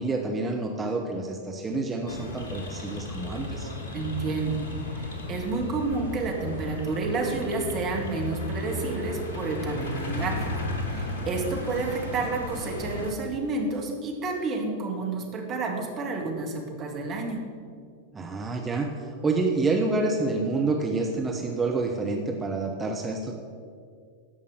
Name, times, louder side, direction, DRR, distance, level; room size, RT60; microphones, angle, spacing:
voice 1, 0.0-3.7 18.1-18.9 19.2-23.3, right 3 dB, 15° right, 2 dB, 0.9 m, -28 dB
sound 1, 2.1-13.1, left 2 dB, 65° left, 1.5 m, -34 dB
voice 2, 3.9-4.6 4.9-17.4, right 3 dB, 35° right, 1 dB, 1.9 m, -30 dB
13.5 x 5.4 x 6.6 m, 2.2 s
figure-of-eight pair, 90°, 0 cm